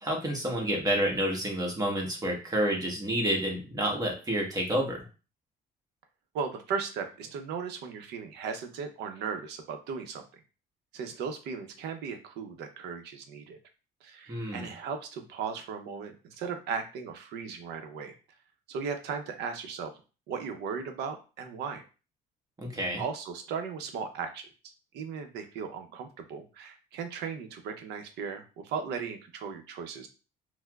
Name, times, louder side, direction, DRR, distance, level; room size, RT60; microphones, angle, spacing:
voice 1, 0.0-5.0 14.3-14.7 22.6-23.0, right 1 dB, 20° right, 0 dB, 1.0 m, -29 dB
voice 2, 6.3-10.2 10.9-13.6 14.0-18.2 18.7-19.9 20.3-21.8 23.0-24.5 24.9-30.1, right 6 dB, 80° right, 7 dB, 0.6 m, -37 dB
4.4 x 2.0 x 2.3 m, 0.33 s
cardioid pair, 110°, 17 cm